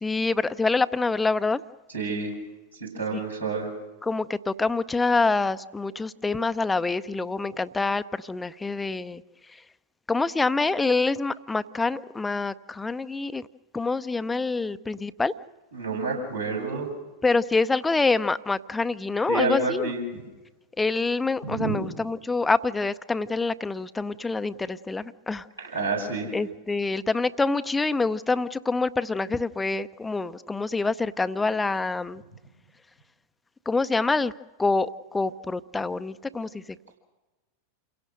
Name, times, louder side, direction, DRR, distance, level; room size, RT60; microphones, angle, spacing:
voice 1, 0.0-1.6 4.0-9.2 10.1-13.4 13.7-15.3 17.2-19.9 20.8-25.4 26.3-32.2 33.7-34.3 34.6-36.6, left 3 dB, 10° left, 13 dB, 0.6 m, -26 dB
voice 2, 1.9-2.3 2.8-3.7 15.7-16.9 19.3-20.0 21.4-21.8 25.6-26.4 31.3-31.4, right 3 dB, 85° right, -3 dB, 7.5 m, -29 dB
28.5 x 17.0 x 6.5 m, 1.2 s
figure-of-eight pair, 90°, 0 cm